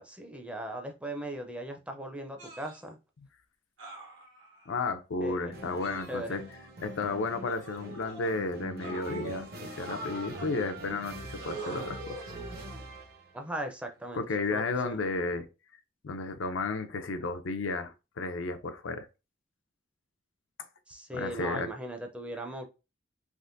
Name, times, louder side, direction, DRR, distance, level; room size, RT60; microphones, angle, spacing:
voice 1, 0.0-3.0 5.2-5.6 6.1-6.4 13.3-14.2 14.5-15.0 20.9-22.7, right 1 dB, 5° right, 0.4 m, -38 dB
sound 1, 2.4-2.8 3.8-4.7 5.8-6.7 7.5-8.3 8.8-10.5 11.4-12.9 14.0-14.2, right 2 dB, 80° right, 1.0 m, -44 dB
voice 2, 4.7-6.4 6.8-12.2 14.1-15.5 16.0-19.1 21.1-21.7, left 3 dB, 85° left, 0.5 m, -33 dB
sound 2, 5.5-13.4, right 1 dB, 55° right, 0.7 m, -44 dB
3.5 x 2.5 x 2.5 m
head